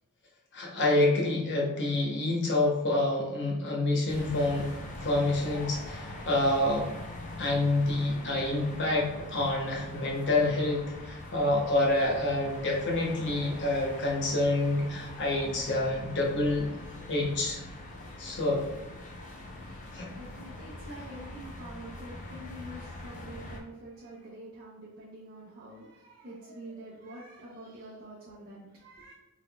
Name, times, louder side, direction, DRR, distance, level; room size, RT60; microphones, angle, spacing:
voice 1, 0.5-4.7 5.0-6.9 7.4-16.7 17.1-17.6 18.2-18.6 19.9-20.1, left 2 dB, 55° left, -2 dB, 1.0 m, -27 dB
sound 1, 4.1-23.6, left 1 dB, 35° left, 0.7 m, -43 dB
voice 2, 19.6-29.1, right 1 dB, 45° right, -7 dB, 0.7 m, -46 dB
3.8 x 3.7 x 2.3 m, 1.0 s
head